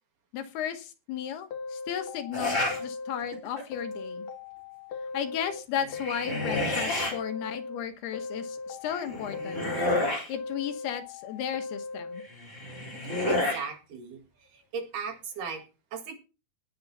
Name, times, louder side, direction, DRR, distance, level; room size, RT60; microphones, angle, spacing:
voice 1, 0.3-4.3 5.1-9.6 10.3-12.2, left 9 dB, 80° left, 8 dB, 3.3 m, -35 dB
sound 1, 1.5-3.4 3.7-5.6 5.9-7.8 8.1-10.0 10.3-12.2, left 4 dB, 60° left, 2.2 m, -39 dB
sound 2, 2.3-2.8 3.3-3.8 5.8-7.1 8.9-10.3 12.3-13.6, left 2 dB, 20° left, 4.6 m, -30 dB
voice 2, 13.3-15.6 15.9-16.1, right 5 dB, 60° right, 4 dB, 3.5 m, -37 dB
19.0 x 6.9 x 4.2 m, 0.32 s
omnidirectional pair, 4.6 m